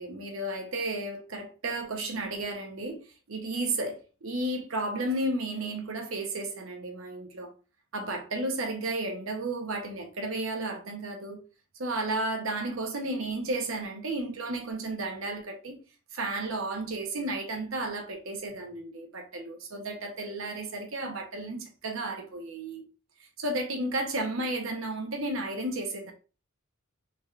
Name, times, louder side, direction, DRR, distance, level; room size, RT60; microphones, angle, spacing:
voice 1, 0.0-3.0 3.3-7.5 7.9-11.4 11.8-15.8 16.1-22.8 23.4-26.1, right 2 dB, 65° right, 0.8 m, -33 dB
3.4 x 3.2 x 2.4 m
head